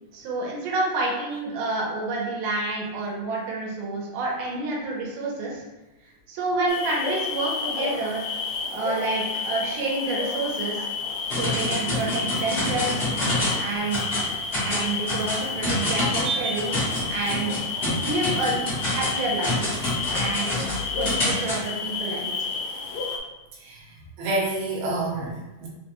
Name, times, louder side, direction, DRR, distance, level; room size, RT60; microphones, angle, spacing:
voice 1, 0.1-5.6 6.3-8.2 8.7-10.9 11.3-13.1 13.6-14.3 14.7-16.7 17.1-17.5 18.0-19.6 20.1-20.5 21.0-22.5, right 2 dB, 85° right, -3 dB, 2.2 m, -28 dB
sound 1, 6.7-23.2, left 5 dB, 80° left, 1.6 m, -31 dB
sound 2, 11.3-13.6 13.9-14.3 14.5-21.6, left 1 dB, 55° left, 0.6 m, -27 dB
voice 2, 16.2-16.5 23.6-23.8 24.2-25.7, right 2 dB, 70° right, -4 dB, 2.0 m, -28 dB
4.9 x 2.1 x 2.9 m, 1.1 s
omnidirectional pair, 3.6 m